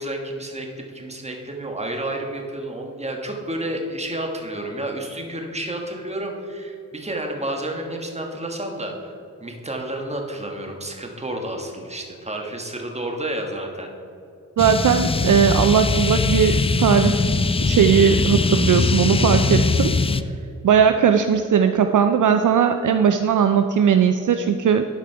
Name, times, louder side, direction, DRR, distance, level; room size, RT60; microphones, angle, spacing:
voice 1, 0.0-9.1 9.4-13.9, right 1 dB, 20° right, 2 dB, 1.5 m, -30 dB
sound 1, 14.6-20.2, left 4 dB, 15° left, 0.3 m, -21 dB
voice 2, 14.6-17.2 17.6-19.9 20.6-24.8, right 7 dB, 60° right, 7 dB, 0.5 m, -18 dB
11.5 x 5.0 x 4.6 m, 2.6 s
cardioid pair, 65°, 35 cm